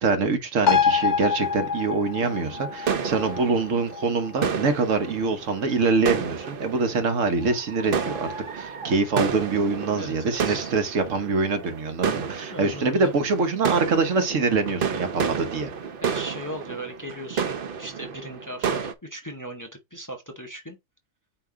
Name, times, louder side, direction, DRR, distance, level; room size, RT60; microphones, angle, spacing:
voice 1, 0.0-15.7, right 4 dB, 85° right, 1.4 m, -24 dB
sound 1, 0.7-7.6 8.0-8.1, left 6 dB, 60° left, 0.5 m, -28 dB
sound 2, 1.0-18.9, right 6 dB, 50° right, 0.8 m, -31 dB
voice 2, 10.0-10.7 12.5-13.1 16.0-20.8, right 1 dB, 20° left, 0.7 m, -38 dB
8.9 x 3.0 x 3.6 m
omnidirectional pair, 1.3 m